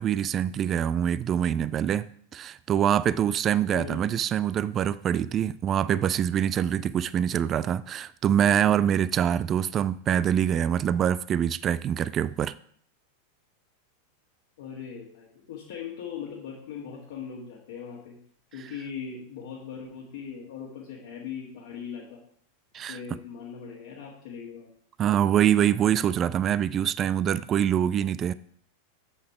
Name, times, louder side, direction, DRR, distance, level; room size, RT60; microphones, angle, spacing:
voice 1, 0.0-12.5 22.7-23.0 25.0-28.3, right 9 dB, 30° right, 0.3 m, -25 dB
voice 2, 3.7-4.1 14.6-18.2 18.5-22.2 22.9-24.7, left 7 dB, 55° left, 1.8 m, -39 dB
7.7 x 6.1 x 4.9 m
figure-of-eight pair, 90°, 0 cm